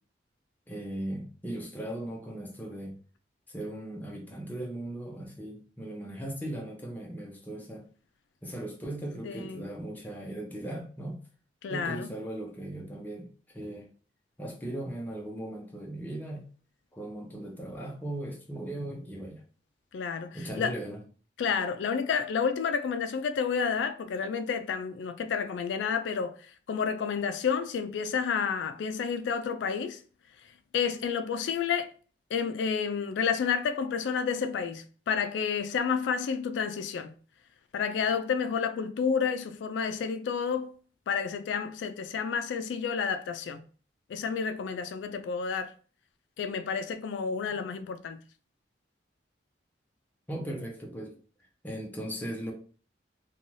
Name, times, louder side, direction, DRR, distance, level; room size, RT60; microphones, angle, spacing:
voice 1, 0.7-3.0 3.5-7.8 8.4-11.2 11.7-13.9 14.4-16.5 16.9-19.4 20.3-21.0 47.5-47.6 50.3-51.2 51.6-52.5, right 1 dB, 10° left, 0.6 m, -38 dB
voice 2, 9.2-9.7 11.6-12.1 19.9-20.7 21.4-26.3 26.7-30.0 30.7-31.9 32.3-37.1 37.7-40.7 41.1-43.6 44.1-45.7 46.4-48.2, left 6 dB, 85° left, 0.3 m, -30 dB
2.6 x 2.3 x 3.0 m
head